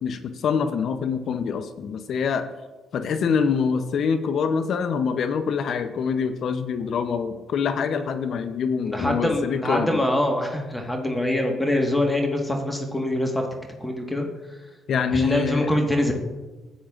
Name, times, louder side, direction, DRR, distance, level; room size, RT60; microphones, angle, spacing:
voice 1, 0.0-2.5 2.9-10.0 14.9-15.7, left 6 dB, 65° left, 10 dB, 0.5 m, -25 dB
voice 2, 8.8-13.4 13.8-14.3 15.1-16.1, left 1 dB, 10° left, 2 dB, 1.4 m, -24 dB
12.5 x 8.7 x 2.4 m, 1.2 s
supercardioid pair, 65°, 0 cm